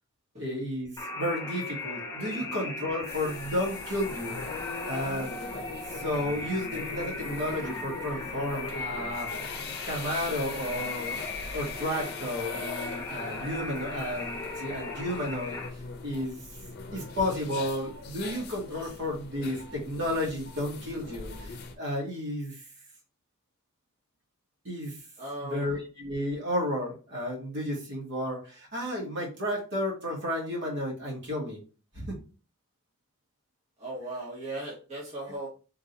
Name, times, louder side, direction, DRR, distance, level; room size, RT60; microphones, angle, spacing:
voice 1, 0.4-4.4 4.9-5.3 5.9-9.3 9.9-11.2 11.5-15.6 16.0-16.4 16.9-22.6 24.7-25.0 25.4-31.6 31.9-32.2, left 1 dB, 60° right, -2 dB, 1.8 m, -32 dB
sound 1, 1.0-15.7, left 3 dB, 15° left, 1.1 m, -38 dB
sound 2, 3.1-21.7, left 4 dB, 50° left, 0.7 m, -41 dB
voice 2, 25.2-25.8 33.8-35.5, right 2 dB, 35° right, -5 dB, 1.4 m, -37 dB
3.8 x 2.8 x 3.9 m, 0.35 s
head